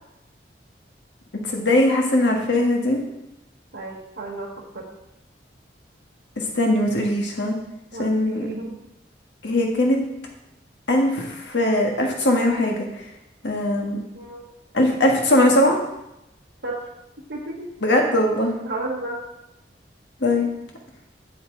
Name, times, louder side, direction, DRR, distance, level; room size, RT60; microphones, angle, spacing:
voice 1, 1.4-3.0 6.4-7.5 8.0-8.5 9.4-10.0 10.9-13.0 13.4-14.0 14.7-15.8 17.8-18.5 20.2-20.5, left 1 dB, 85° left, 1 dB, 1.6 m, -20 dB
voice 2, 3.7-4.8 7.9-8.8 14.1-14.4 16.6-16.8 17.3-17.7 18.6-19.2, right 2 dB, 75° right, -4 dB, 1.4 m, -32 dB
8.1 x 7.3 x 3.8 m, 0.88 s
head